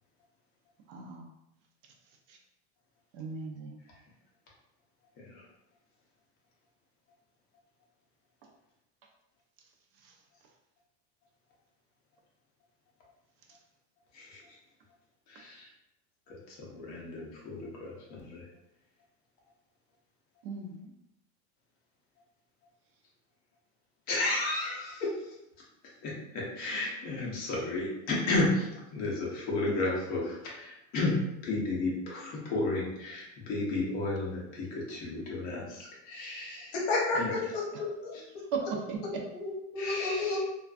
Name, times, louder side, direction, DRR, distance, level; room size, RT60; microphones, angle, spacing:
voice 1, 0.9-1.3 2.3-2.4 3.1-3.8 10.0-10.1 20.4-20.9 29.7-29.8 37.7-37.8 38.5-39.2, right 5 dB, 55° right, 2 dB, 0.4 m, -37 dB
voice 2, 14.1-14.6 15.3-15.7 16.3-18.5 24.1-25.3 26.0-31.1 31.4-36.7 37.1-37.3 39.8-40.4, left 2 dB, 25° left, -4 dB, 0.5 m, -33 dB
voice 3, 36.7-38.2 39.3-40.4, left 3 dB, 60° left, -2 dB, 0.8 m, -31 dB
2.5 x 2.3 x 2.3 m, 0.87 s
supercardioid pair, 175°, 34 cm